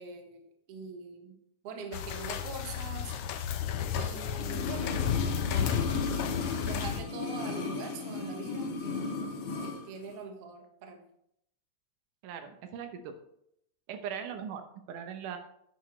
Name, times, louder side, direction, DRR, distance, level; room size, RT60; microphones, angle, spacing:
voice 1, 0.0-1.4 1.6-3.5 4.0-5.0 5.2-5.9 6.7-9.2 9.6-11.1, right 4 dB, 60° right, 4 dB, 2.0 m, -43 dB
sound 1, 1.9-7.0, left 8 dB, 85° left, 1.3 m, -32 dB
sound 2, 4.4-9.8 10.1-10.2, left 3 dB, 65° left, 2.4 m, -35 dB
voice 2, 12.2-13.2 13.9-15.4, right 8 dB, 85° right, 7 dB, 2.4 m, -40 dB
10.0 x 9.3 x 3.1 m, 0.75 s
omnidirectional pair, 3.6 m